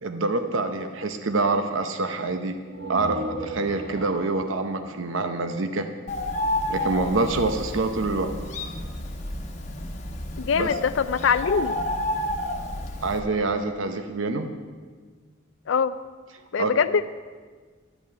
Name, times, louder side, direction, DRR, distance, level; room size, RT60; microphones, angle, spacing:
voice 1, 0.0-2.6 2.9-5.9 6.7-8.3 10.5-10.7 13.0-14.5 16.6-16.7, right 3 dB, 75° right, 7 dB, 0.8 m, -26 dB
sound 1, 2.6-6.3, equal, 55° right, 1.3 m, -37 dB
Bird, 6.1-13.2, left 1 dB, 35° left, 1.2 m, -30 dB
voice 2, 10.4-11.8 15.7-15.9 16.5-17.1, left 6 dB, 70° left, 12 dB, 0.4 m, -23 dB
12.5 x 6.1 x 8.9 m, 1.5 s
head